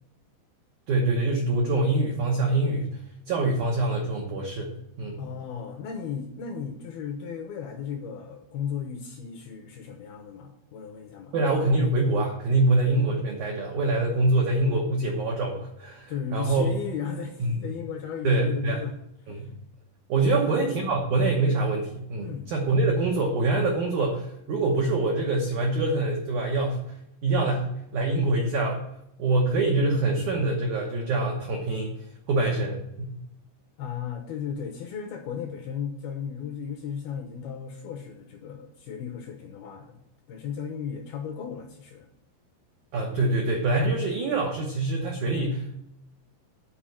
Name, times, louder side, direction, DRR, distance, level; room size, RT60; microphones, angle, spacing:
voice 1, 0.9-2.9 3.3-5.2 11.3-16.7 17.4-17.7 18.2-18.8 19.3-19.5 20.1-26.8 27.2-28.8 29.2-31.9 32.3-33.1 42.9-45.8, right 2 dB, 80° right, 0 dB, 1.7 m, -25 dB
voice 2, 5.2-11.3 16.1-18.9 19.2-19.5 20.3-20.6 22.2-22.5 33.8-40.0 40.3-42.1, left 7 dB, 75° left, 2 dB, 2.4 m, -35 dB
8.9 x 4.6 x 7.5 m, 0.78 s
omnidirectional pair, 5.3 m